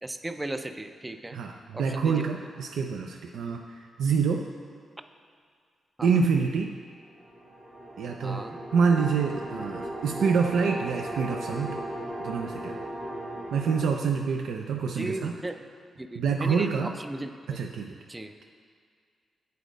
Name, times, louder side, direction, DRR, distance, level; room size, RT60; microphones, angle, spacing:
voice 1, 0.0-1.4 1.7-2.3 6.0-6.2 8.2-8.6 14.9-15.6 16.0-17.6 18.1-18.3, right 2 dB, 15° right, 8 dB, 0.3 m, -36 dB
voice 2, 1.3-4.5 6.0-6.7 8.0-11.8 12.2-12.8 13.5-15.3 16.2-17.0 17.5-18.0, right 5 dB, 85° right, 2 dB, 0.4 m, -27 dB
sound 1, 7.0-13.9, right 1 dB, 30° right, 1.4 m, -37 dB
8.3 x 4.0 x 5.1 m, 2.1 s
cardioid pair, 110°, 0 cm